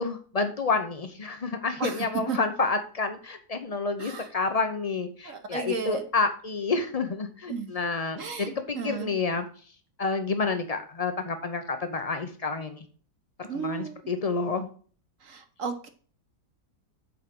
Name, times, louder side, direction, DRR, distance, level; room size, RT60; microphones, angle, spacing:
voice 1, 0.0-9.5 10.0-12.9 13.4-14.7, left 4 dB, 65° left, 7 dB, 0.3 m, -29 dB
voice 2, 1.8-2.4 4.0-4.3 5.2-6.0 7.5-7.7 8.2-9.1 13.5-14.0 15.2-15.9, right 6 dB, 55° right, 7 dB, 1.1 m, -34 dB
7.2 x 4.9 x 5.9 m, 0.43 s
omnidirectional pair, 1.8 m